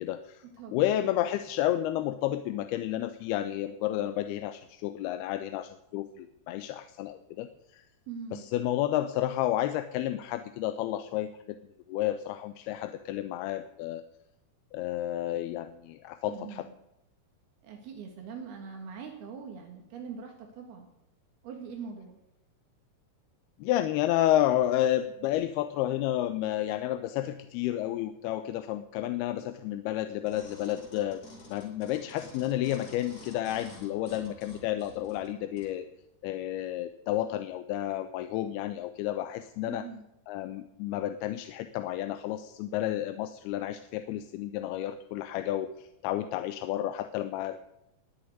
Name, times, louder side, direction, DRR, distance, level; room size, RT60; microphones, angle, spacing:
voice 1, 0.0-0.4 0.7-7.5 7.7-7.8 8.3-11.6 11.9-14.0 14.7-16.7 23.6-31.2 31.5-35.9 36.2-39.9 40.3-47.6, left 13 dB, 80° left, 10 dB, 2.6 m, -31 dB
voice 2, 0.6-0.9 8.1-8.5 16.3-16.7 17.6-20.9 21.4-22.2 39.7-40.0, right 6 dB, 70° right, 3 dB, 3.6 m, -42 dB
sound 1, 30.3-35.7 36.3-36.4, left 2 dB, 45° left, 4.2 m, -50 dB
20.0 x 6.8 x 9.4 m, 0.84 s
omnidirectional pair, 4.6 m